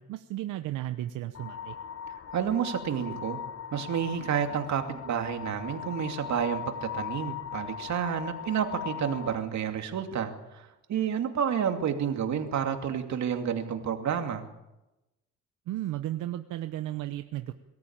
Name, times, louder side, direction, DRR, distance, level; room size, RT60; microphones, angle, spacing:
voice 1, 0.0-1.8 15.7-17.5, right 14 dB, 90° right, 9 dB, 1.0 m, -34 dB
sound 1, 1.3-9.4, left 9 dB, 50° left, 1.2 m, -39 dB
voice 2, 2.3-3.4 3.7-14.4, right 8 dB, 65° right, 5 dB, 2.7 m, -30 dB
23.0 x 13.5 x 8.9 m, 0.96 s
cardioid pair, 90°, 30 cm